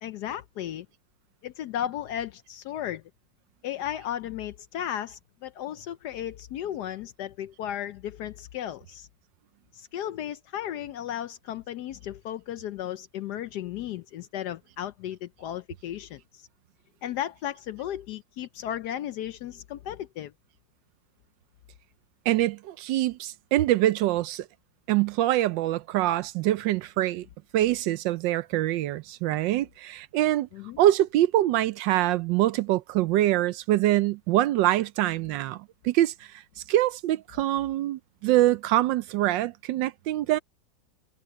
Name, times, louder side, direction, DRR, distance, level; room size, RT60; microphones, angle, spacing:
voice 1, 0.0-0.9 1.4-3.0 3.6-9.1 9.7-16.5 17.0-20.3 30.5-30.8, left 11 dB, 70° left, 1.0 m, -35 dB
voice 2, 22.3-24.5 24.9-27.3 27.5-30.5 30.8-36.3 36.7-40.4, right 14 dB, 75° right, 1.2 m, -24 dB
omnidirectional pair, 2.1 m